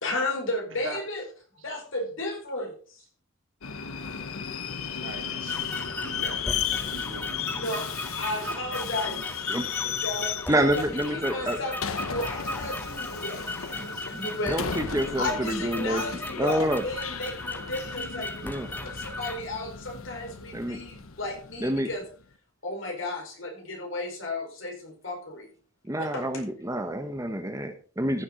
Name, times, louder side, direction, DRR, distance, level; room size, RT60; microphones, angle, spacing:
voice 1, 0.0-1.2 1.6-3.0 7.5-9.2 9.8-14.6 15.2-22.0 22.6-25.5 26.0-26.2, left 2 dB, 65° left, 2 dB, 4.8 m, -34 dB
Subway metro underground, 3.6-22.1, left 7 dB, 85° left, 1.1 m, -35 dB
voice 2, 5.0-5.7 5.9-6.6 6.8-7.7 8.3-9.3, right 3 dB, 65° right, 5 dB, 2.5 m, -43 dB
sound 1, 5.5-19.4, left 2 dB, 10° left, 0.9 m, -37 dB
voice 3, 10.5-11.6 13.7-16.1 16.4-16.8 18.4-18.7 20.5-20.8 21.6-21.9 25.9-28.2, right 1 dB, 15° right, 7 dB, 1.1 m, -28 dB
15.0 x 7.2 x 5.1 m, 0.40 s
head